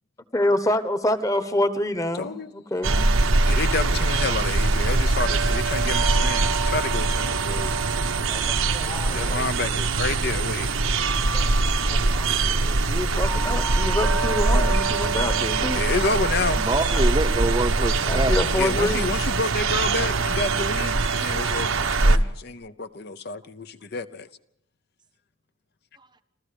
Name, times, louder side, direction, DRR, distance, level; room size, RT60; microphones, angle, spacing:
voice 1, 0.3-3.1 7.8-8.0 8.3-9.4 11.0-15.9 16.9-17.0 18.1-19.1, left 1 dB, 15° left, 1.1 m, -27 dB
voice 2, 2.1-2.5 3.5-7.7 9.1-10.7 15.2-15.4 15.7-16.7 18.6-24.3, left 3 dB, 50° left, 0.7 m, -29 dB
sound 1, 2.8-22.2, right 3 dB, 80° right, 1.1 m, -22 dB
voice 3, 16.6-18.7, right 2 dB, 20° right, 0.8 m, -26 dB
26.5 x 14.5 x 6.9 m
head